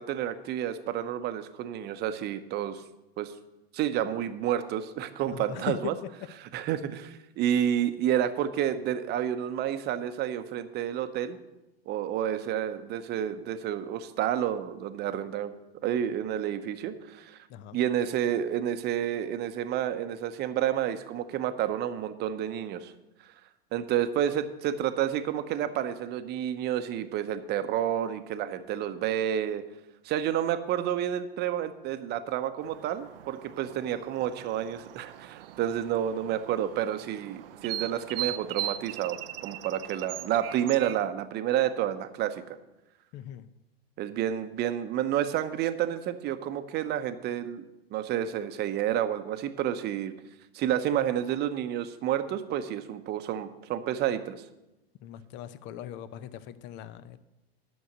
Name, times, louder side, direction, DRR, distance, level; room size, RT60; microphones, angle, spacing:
voice 1, 0.0-2.8 3.2-3.3 3.7-5.9 6.5-11.4 11.9-15.5 15.8-17.4 17.7-22.9 23.7-29.6 30.0-42.6 44.0-47.6 47.9-50.1 50.5-54.4, right 10 dB, 30° right, 10 dB, 0.8 m, -30 dB
voice 2, 5.3-5.9 17.5-17.8 43.1-43.5 55.0-57.2, left 12 dB, 35° left, 15 dB, 0.7 m, -39 dB
sound 1, 32.6-41.1, right 13 dB, 65° right, 0.5 m, -40 dB
11.0 x 6.4 x 6.6 m, 0.97 s
hypercardioid pair, 100°, 31 cm